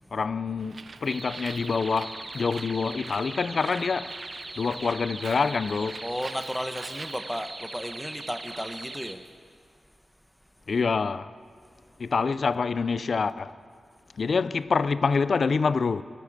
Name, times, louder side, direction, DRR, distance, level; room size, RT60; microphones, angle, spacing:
voice 1, 0.1-4.2 4.6-6.0 10.7-11.3 12.0-13.5 14.2-16.0, left 5 dB, 65° left, 0.4 m, -26 dB
Bird, 0.6-7.2, right 4 dB, 70° right, 0.7 m, -46 dB
sound 1, 1.1-9.1, right 2 dB, 40° right, 1.0 m, -40 dB
voice 2, 6.0-9.2, equal, ahead, 1.1 m, -34 dB
17.5 x 12.0 x 6.6 m
cardioid pair, 45°, 0 cm